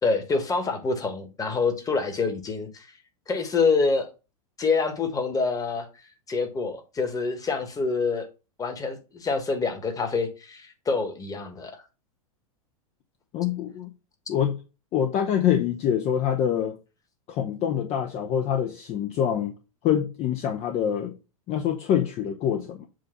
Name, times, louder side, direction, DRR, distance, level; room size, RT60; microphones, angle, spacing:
voice 1, 0.0-2.9 3.3-4.1 4.6-5.9 6.3-8.3 8.6-11.8, left 4 dB, 20° left, 1.4 m, -26 dB
voice 2, 13.3-13.9 14.3-14.6 14.9-16.8 17.3-19.5 19.8-21.1 21.5-22.9, left 9 dB, 35° left, 0.8 m, -25 dB
7.7 x 2.6 x 5.7 m
hypercardioid pair, 110°, 18 cm